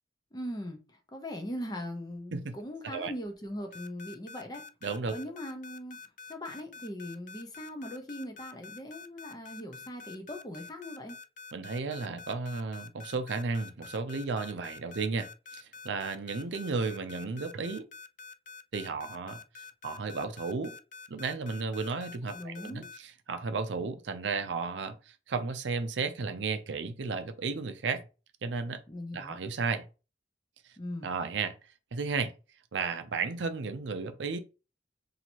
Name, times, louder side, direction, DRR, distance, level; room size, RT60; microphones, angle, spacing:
voice 1, 0.3-0.8 1.1-4.6 5.1-6.0 6.3-11.2 22.2-22.8 28.9-29.4 30.8-31.1, left 1 dB, 20° left, 0.8 m, -40 dB
sound 1, 3.7-23.0, left 5 dB, 45° left, 0.3 m, -47 dB
voice 2, 4.8-5.2 11.5-17.9 18.7-19.4 19.8-20.8 21.1-28.0 28.4-28.8 29.1-29.8 31.0-31.6 31.9-32.3 32.7-34.4, right 4 dB, 85° right, 0.5 m, -33 dB
2.9 x 2.8 x 4.3 m
head